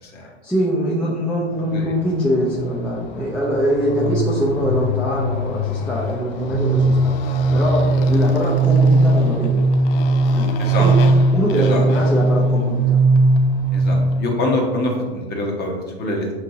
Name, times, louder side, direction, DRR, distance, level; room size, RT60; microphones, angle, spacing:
voice 1, 0.2-9.6 10.3-11.0 11.3-13.0, equal, 5° left, -6 dB, 0.5 m, -23 dB
Motorcycle, 1.6-14.3, left 5 dB, 60° left, 0.5 m, -31 dB
sound 1, 6.5-14.1, right 2 dB, 60° right, 1.0 m, -17 dB
voice 2, 11.5-11.8 13.7-16.3, left 1 dB, 30° left, 0 dB, 0.9 m, -24 dB
5.2 x 2.9 x 2.7 m, 1.3 s
hypercardioid pair, 95°, 32 cm